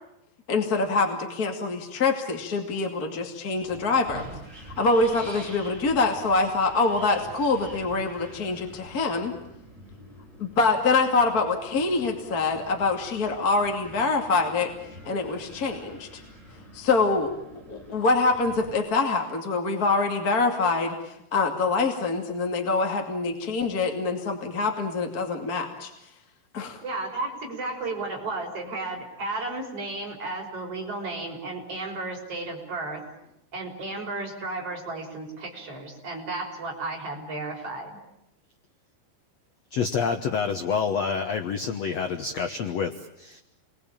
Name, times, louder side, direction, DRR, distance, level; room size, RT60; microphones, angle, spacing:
voice 1, 0.5-4.3 4.7-9.3 10.4-14.7 15.0-16.2 16.7-17.3 17.7-26.1 26.5-26.8, left 3 dB, 30° left, 3 dB, 2.2 m, -25 dB
Wind, 3.6-18.8, right 1 dB, 15° right, 7.8 m, -46 dB
voice 2, 26.8-33.0 33.5-38.0, right 2 dB, 35° right, 0 dB, 6.3 m, -33 dB
voice 3, 39.7-43.4, left 6 dB, 85° left, 7 dB, 1.4 m, -28 dB
29.5 x 22.0 x 8.9 m, 0.83 s
omnidirectional pair, 4.8 m